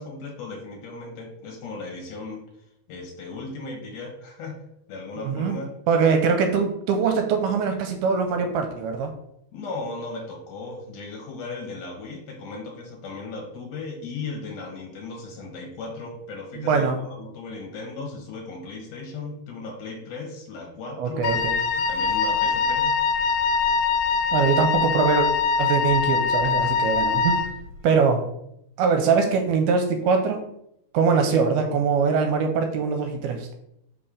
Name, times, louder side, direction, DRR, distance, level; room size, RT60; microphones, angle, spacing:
voice 1, 0.0-2.4 2.9-4.6 4.9-5.7 9.5-21.3 21.7-23.0, left 3 dB, 65° left, -1 dB, 2.4 m, -36 dB
voice 2, 5.2-5.6 5.9-9.1 16.6-17.0 21.0-21.5 24.3-25.3 25.6-27.4 27.8-28.3 28.8-30.5 30.9-33.5, right 5 dB, 80° right, 5 dB, 2.5 m, -22 dB
Wind instrument woodwind instrument, 21.2-27.6, left 5 dB, 90° left, 2.6 m, -23 dB
5.6 x 4.5 x 5.0 m, 0.77 s
omnidirectional pair, 4.5 m